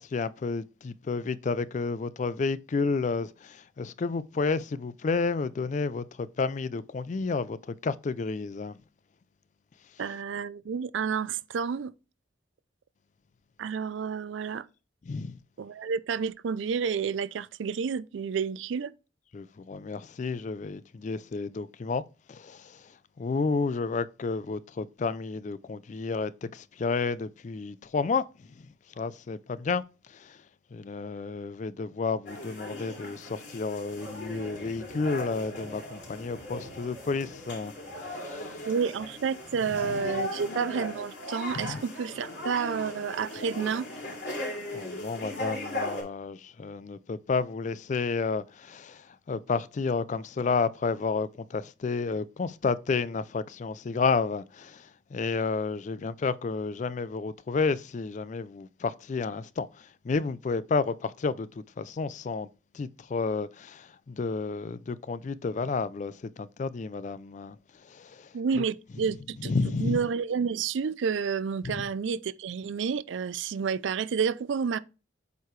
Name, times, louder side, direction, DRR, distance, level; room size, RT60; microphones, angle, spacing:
voice 1, 0.0-8.8 15.1-15.3 19.3-22.0 22.3-22.7 23.2-28.2 29.0-29.8 30.1-30.4 30.7-37.7 38.2-38.5 41.6-41.8 44.7-61.5 61.8-62.5 62.7-67.6 67.9-68.3 69.4-70.0 71.6-71.8, left 4 dB, 40° left, 0.3 m, -31 dB
voice 2, 10.0-11.9 13.6-14.7 15.6-18.9 38.7-43.9 68.3-69.5 69.8-74.8, right 6 dB, 75° right, 0.4 m, -30 dB
sound 1, 32.3-46.0, left 1 dB, 60° left, 3.1 m, -38 dB
8.1 x 4.6 x 3.1 m
head